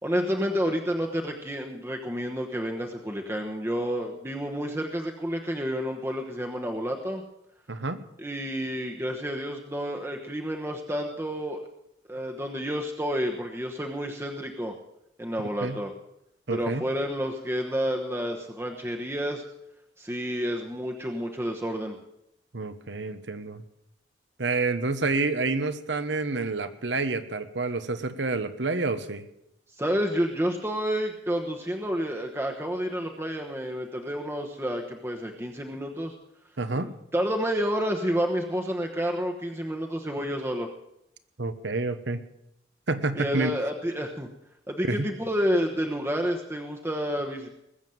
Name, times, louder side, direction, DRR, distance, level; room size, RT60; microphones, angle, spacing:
voice 1, 0.0-7.2 8.2-11.6 12.1-14.7 15.2-15.9 16.5-19.4 20.0-22.0 29.8-36.1 36.8-40.7 43.1-44.3 44.7-47.5, equal, 15° right, 2 dB, 1.1 m, -30 dB
voice 2, 7.7-8.0 15.6-15.8 16.5-16.9 22.5-23.6 24.4-29.2 36.6-36.9 41.4-42.2 42.9-43.6 44.9-45.1, right 3 dB, 75° right, 11 dB, 1.2 m, -28 dB
20.5 x 7.3 x 7.7 m, 0.81 s
head